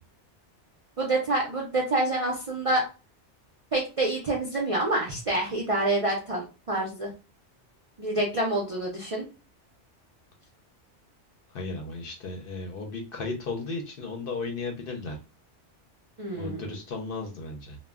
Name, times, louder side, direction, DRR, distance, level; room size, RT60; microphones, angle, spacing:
voice 1, 1.0-2.8 3.7-7.1 8.0-9.3 16.2-16.6, right 2 dB, 50° right, -2 dB, 0.4 m, -27 dB
voice 2, 11.5-15.2 16.4-17.8, left 3 dB, 60° left, 3 dB, 0.7 m, -35 dB
2.2 x 2.1 x 3.4 m, 0.33 s
omnidirectional pair, 1.2 m